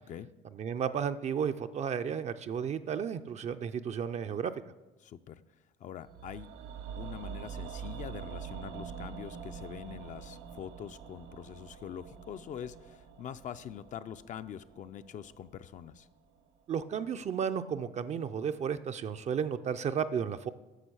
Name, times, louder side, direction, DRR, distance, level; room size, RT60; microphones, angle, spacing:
voice 1, 0.5-4.5 16.7-20.5, right 7 dB, 40° right, 10 dB, 0.4 m, -33 dB
voice 2, 5.0-5.4 5.8-6.5 7.0-16.1, left 9 dB, 50° left, 11 dB, 0.4 m, -44 dB
sound 1, 6.1-16.2 16.5-16.6, right 7 dB, 75° right, 0.9 m, -45 dB
9.9 x 6.3 x 6.2 m, 1.1 s
cardioid pair, 110°, 17 cm